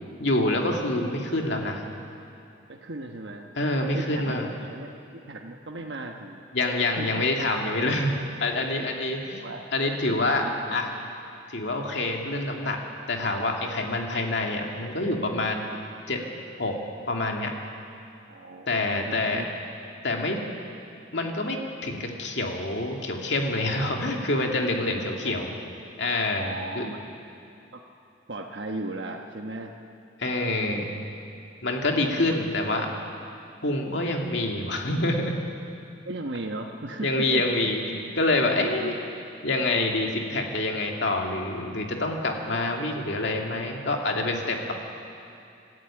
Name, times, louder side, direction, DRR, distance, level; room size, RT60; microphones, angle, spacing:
voice 1, 0.2-1.8 3.6-4.5 6.5-9.4 9.7-10.4 10.7-10.9 11.5-12.8 13.1-15.7 16.1-16.2 16.6-16.8 17.1-17.5 18.7-19.4 20.0-20.4 21.1-25.5 26.0-26.9 30.2-30.9 31.6-32.9 33.6-35.4 37.0-39.0 39.4-44.7, left 2 dB, 65° left, 1 dB, 2.5 m, -26 dB
voice 2, 2.7-4.4 4.7-4.9 5.1-6.4 7.0-7.3 8.8-8.9 9.3-9.6 10.4-10.8 18.3-19.5 24.8-25.4 26.3-27.2 27.7-27.8 28.3-29.7 30.5-31.1 32.2-32.4 36.0-37.7 38.7-39.0, right 2 dB, 65° right, 2 dB, 1.2 m, -37 dB
26.5 x 14.0 x 9.0 m, 2.6 s
head